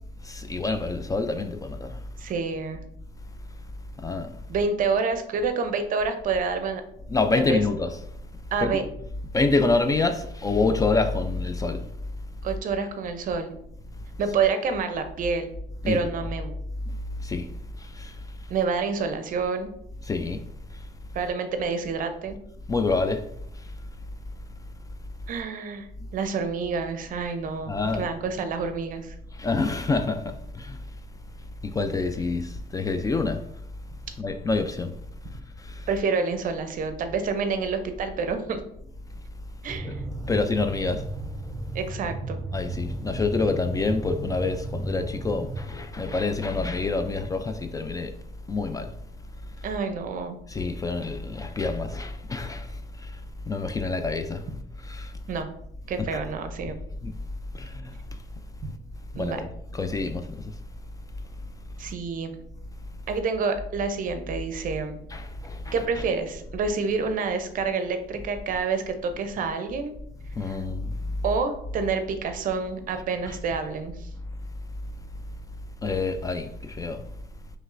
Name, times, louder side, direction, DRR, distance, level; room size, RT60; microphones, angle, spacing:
voice 1, 0.2-2.0 4.0-4.3 7.1-8.0 8.6-8.8 9.3-11.8 15.8-16.2 17.2-17.5 17.9-18.1 20.0-20.4 22.7-23.3 27.7-28.1 29.4-30.8 31.6-33.4 34.2-34.9 35.7-35.8 39.8-39.9 40.3-41.1 42.5-48.1 48.5-48.9 50.5-52.7 53.0-53.1 53.5-54.4 54.8-55.1 56.1-56.2 57.0-57.1 57.5-57.9 59.1-59.5 59.7-60.3 65.1-65.7 70.4-70.9 73.3-73.4 75.8-77.0, left 3 dB, 20° left, 0.3 m, -27 dB
voice 2, 2.2-2.8 4.5-6.8 7.5-7.6 8.5-8.8 12.4-13.6 14.2-15.5 15.9-16.5 18.5-19.7 21.1-22.4 25.3-29.1 35.9-38.6 39.6-40.0 41.7-42.4 49.6-50.4 55.3-55.5 55.9-56.8 59.1-59.4 61.8-62.3 63.1-65.0 65.7-69.9 70.4-70.6 71.2-74.1, right 5 dB, 55° right, 0.6 m, -28 dB
sound 1, 39.7-45.7, right 2 dB, 10° right, 0.9 m, -34 dB
5.1 x 3.1 x 2.5 m
cardioid pair, 110°, 17 cm